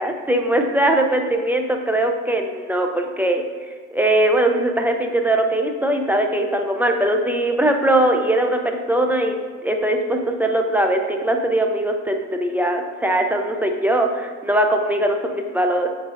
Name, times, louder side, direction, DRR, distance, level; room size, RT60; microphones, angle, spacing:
voice 1, 0.0-3.4 3.9-15.9, right 1 dB, 5° right, 3 dB, 0.5 m, -20 dB
9.5 x 3.9 x 2.6 m, 1.5 s
cardioid pair, 90°, 30 cm